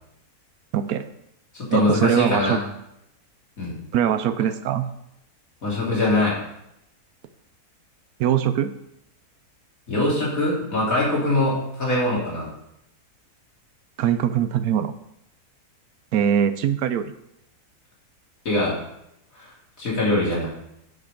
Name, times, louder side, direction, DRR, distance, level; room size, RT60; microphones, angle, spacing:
voice 1, 0.7-1.1 1.7-2.6 3.9-4.9 8.2-8.7 14.0-14.9 16.1-17.1, right 9 dB, 75° right, 11 dB, 1.0 m, -22 dB
voice 2, 1.5-2.6 3.6-3.8 5.6-6.4 9.9-12.5 18.4-18.8 19.3-19.5 19.8-20.5, left 2 dB, 60° left, -5 dB, 3.3 m, -23 dB
9.3 x 5.7 x 5.2 m, 0.81 s
omnidirectional pair, 1.6 m